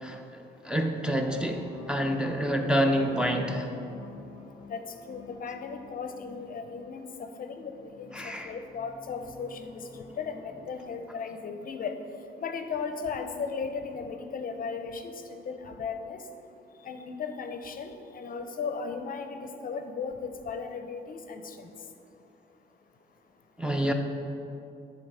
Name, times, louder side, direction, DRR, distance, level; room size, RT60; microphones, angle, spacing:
voice 1, 0.0-3.7 8.1-8.5 23.6-23.9, equal, 5° right, 2 dB, 0.5 m, -28 dB
sound 1, 1.0-10.9, left 3 dB, 15° left, 1.2 m, -49 dB
voice 2, 4.7-11.9 12.4-16.2 16.8-21.7, left 5 dB, 45° left, 7 dB, 0.6 m, -36 dB
7.8 x 3.9 x 5.5 m, 2.8 s
cardioid pair, 90°, 20 cm